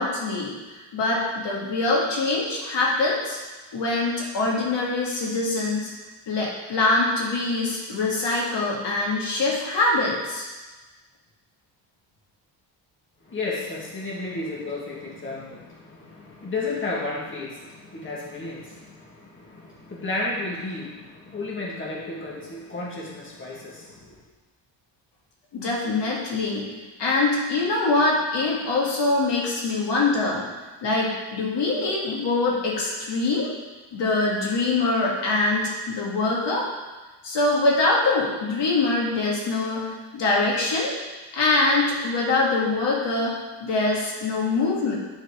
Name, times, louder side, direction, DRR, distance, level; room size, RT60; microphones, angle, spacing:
voice 1, 0.0-3.4 3.7-5.9 6.3-10.5 25.5-26.7 27.0-30.4 30.8-33.5 33.9-36.6 37.2-40.9 41.3-44.9, left 3 dB, 70° left, -4 dB, 1.9 m, -24 dB
voice 2, 13.2-24.2, left 2 dB, 25° left, -4 dB, 1.9 m, -33 dB
8.2 x 4.5 x 4.8 m, 1.2 s
cardioid pair, 110°, 44 cm